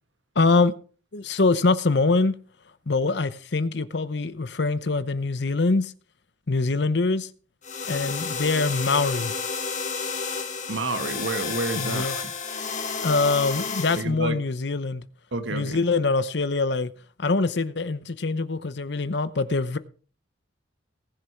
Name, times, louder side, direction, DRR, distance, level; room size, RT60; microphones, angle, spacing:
voice 1, 0.4-0.8 1.1-2.3 2.9-5.9 6.5-7.3 7.8-9.3 11.8-12.2 13.0-15.0 15.5-16.9 17.2-19.8, left 3 dB, 65° left, 0.8 m, -24 dB
sound 1, 7.6-14.0, left 5 dB, 40° left, 1.7 m, -31 dB
voice 2, 10.7-12.3 14.0-14.4 15.3-15.8, right 2 dB, 80° right, 1.5 m, -30 dB
19.0 x 6.8 x 4.5 m
head